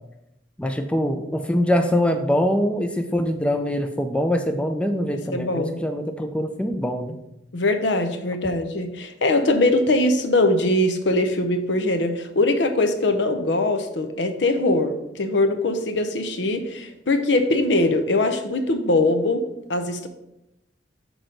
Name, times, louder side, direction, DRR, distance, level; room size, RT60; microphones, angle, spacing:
voice 1, 0.6-7.2, equal, 5° left, 6 dB, 0.4 m, -23 dB
voice 2, 5.3-5.8 7.5-20.1, left 2 dB, 75° left, 7 dB, 0.7 m, -22 dB
6.0 x 3.9 x 5.1 m, 0.86 s
head